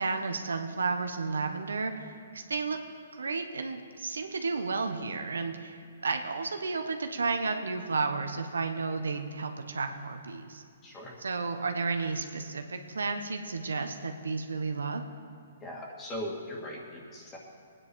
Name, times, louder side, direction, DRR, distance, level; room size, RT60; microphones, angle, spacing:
voice 1, 0.0-2.8 3.1-10.6 11.2-15.0, right 4 dB, 90° right, 6 dB, 1.1 m, -32 dB
voice 2, 10.8-11.2 15.6-17.4, equal, 20° left, -1 dB, 2.3 m, -39 dB
20.5 x 9.5 x 4.7 m, 2.2 s
hypercardioid pair, 140°, 0 cm